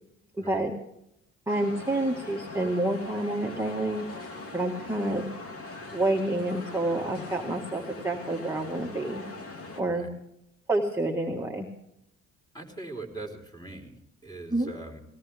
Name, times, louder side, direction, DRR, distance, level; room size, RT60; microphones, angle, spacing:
voice 1, 0.4-0.7 1.5-4.0 4.5-5.2 5.9-9.2 9.8-10.1 10.7-11.7 14.5-14.7, right 2 dB, 10° right, -1 dB, 1.8 m, -28 dB
sound 1, 1.5-9.8, left 2 dB, 50° left, 3.0 m, -41 dB
voice 2, 12.5-15.0, right 2 dB, 15° left, 2 dB, 4.4 m, -41 dB
19.5 x 17.0 x 3.5 m, 0.79 s
cardioid pair, 90°, 30 cm